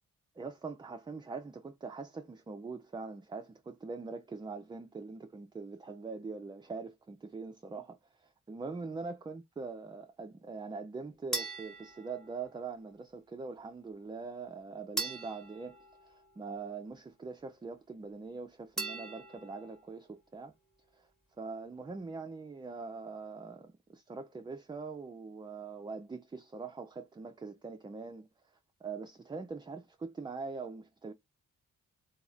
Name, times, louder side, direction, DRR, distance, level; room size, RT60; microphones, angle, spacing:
voice 1, 0.4-15.8 16.0-20.5 20.9-21.1 21.4-28.3 28.8-31.1, right 4 dB, 15° right, 0.3 m, -43 dB
sound 1, 11.3-12.8 15.0-16.8 18.8-19.9, right 3 dB, ahead, 1.1 m, -41 dB
3.0 x 2.3 x 2.4 m
cardioid pair, 55°, 34 cm